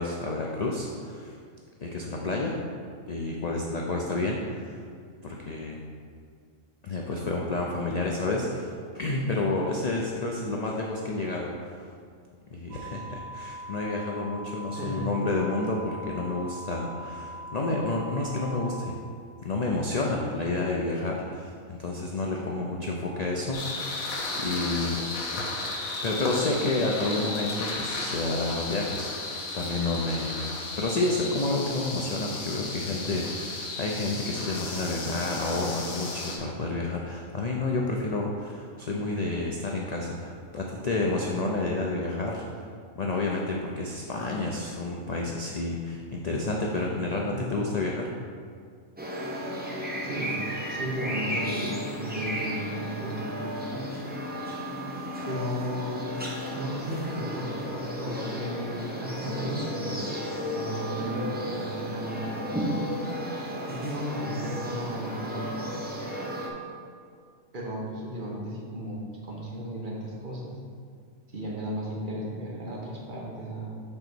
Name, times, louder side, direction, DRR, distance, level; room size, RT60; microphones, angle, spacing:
voice 1, 0.0-1.3 1.8-2.6 3.1-4.8 5.2-5.8 6.8-11.9 12.5-19.0 19.4-25.0 25.3-25.5 26.0-30.4 30.8-42.6 42.9-48.1, left 2 dB, 55° left, -1 dB, 0.4 m, -30 dB
sound 1, 12.7-18.9, right 1 dB, 80° right, 1.1 m, -41 dB
voice 2, 14.7-15.1 47.3-47.6 50.0-50.4 50.7-53.9 55.2-56.1 56.4-60.1 60.5-62.7 63.7-66.3 67.5-70.6 71.3-73.8, equal, 40° right, -4 dB, 1.2 m, -35 dB
sound 2, 23.5-36.4, left 2 dB, 85° left, 1.4 m, -34 dB
sound 3, 49.0-66.5, equal, 10° right, 0.7 m, -34 dB
5.5 x 3.9 x 6.0 m, 2.1 s
omnidirectional pair, 1.4 m